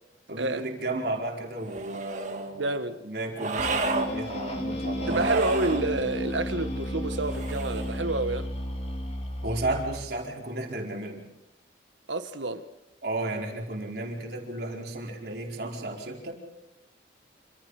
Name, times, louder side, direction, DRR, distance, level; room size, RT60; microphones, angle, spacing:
voice 1, 0.3-2.7 3.0-5.5 9.4-11.2 13.0-16.4, right 2 dB, 55° right, 4.7 m, -33 dB
sound 1, 1.6-2.5 3.4-4.1 5.0-5.9 7.2-8.0, right 3 dB, 40° right, 2.1 m, -31 dB
voice 2, 2.6-3.0 5.1-8.5 12.1-12.7, right 2 dB, 80° right, 1.6 m, -29 dB
sound 2, 3.6-10.1, equal, 35° left, 3.6 m, -33 dB
28.0 x 27.0 x 5.0 m
head